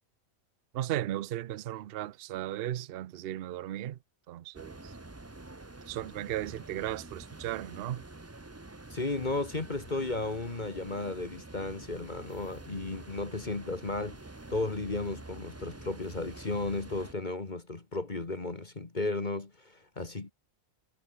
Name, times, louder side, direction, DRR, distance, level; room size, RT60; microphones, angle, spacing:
voice 1, 0.7-4.0 4.3-4.9 5.9-8.0, right 13 dB, 55° right, 0.7 m, -36 dB
sound 1, 4.5-17.1, right 2 dB, 15° right, 0.7 m, -47 dB
voice 2, 8.9-14.2 14.5-20.3, left 2 dB, 35° left, 1.9 m, -34 dB
omnidirectional pair, 1.4 m